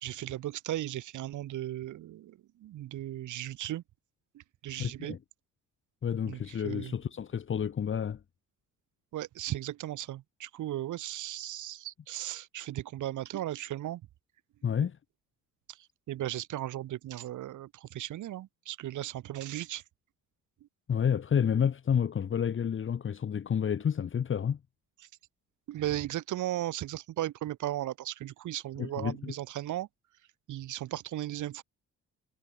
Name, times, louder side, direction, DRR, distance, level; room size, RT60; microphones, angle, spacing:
voice 1, 0.0-3.8 4.3-5.2 6.2-6.9 9.1-14.0 15.7-15.8 16.1-19.8 25.7-29.9 30.5-31.6, right 13 dB, 80° right, 2.7 m, -36 dB
voice 2, 4.8-5.2 6.0-8.2 14.6-15.0 20.9-24.6 28.8-29.3, left 8 dB, 40° left, 1.3 m, -30 dB
cardioid pair, 90°, 30 cm